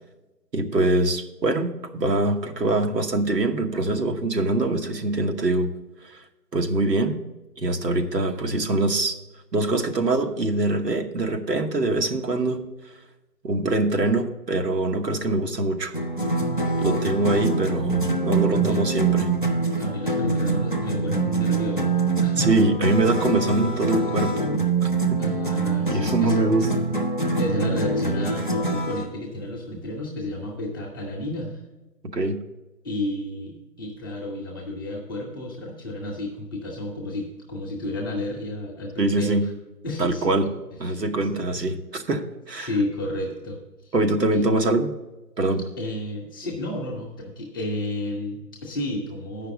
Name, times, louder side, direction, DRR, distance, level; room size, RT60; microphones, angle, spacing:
voice 1, 0.5-5.7 6.0-6.2 6.5-7.2 7.6-9.2 9.5-12.6 13.4-15.9 16.8-19.3 22.4-24.5 24.8-25.2 25.9-26.7 32.0-32.4 39.0-39.4 40.0-40.5 40.8-42.7 43.9-44.9 45.4-45.6, right 2 dB, 85° right, 5 dB, 1.2 m, -23 dB
sound 1, 15.9-29.1, right 3 dB, 35° left, 0.4 m, -24 dB
voice 2, 18.5-18.8 19.8-22.5 25.2-26.4 27.3-31.6 32.8-39.5 39.8-40.5 40.8-41.0 41.3-41.4 42.6-43.9 44.3-44.5 45.8-49.5, left 1 dB, 15° left, -2 dB, 0.8 m, -31 dB
8.3 x 5.8 x 7.1 m, 1.0 s
figure-of-eight pair, 145°, 48 cm